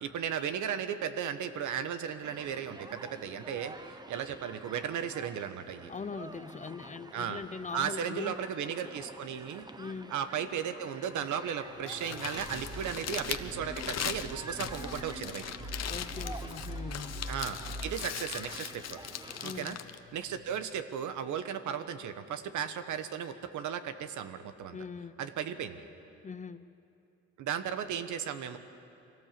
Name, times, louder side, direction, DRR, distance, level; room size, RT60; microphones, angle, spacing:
voice 1, 0.0-5.9 7.1-7.4 7.7-9.7 10.1-15.4 17.3-19.0 19.4-19.8 20.1-24.8 25.2-25.8 27.4-28.6, right 8 dB, 75° right, 10 dB, 1.2 m, -35 dB
Human group actions, 2.2-19.6, right 2 dB, 15° right, 0.8 m, -49 dB
voice 2, 5.9-8.3 9.8-10.2 15.9-17.2 19.4-19.8 24.7-25.2 26.2-26.7, left 5 dB, 25° left, 14 dB, 0.6 m, -41 dB
Crumpling crinkling, 11.7-20.8, left 9 dB, 55° left, 1.0 m, -40 dB
sound 1, 12.3-17.9, equal, 55° right, 5.5 m, -42 dB
23.0 x 17.5 x 7.5 m, 2.8 s
cardioid pair, 90°, 30 cm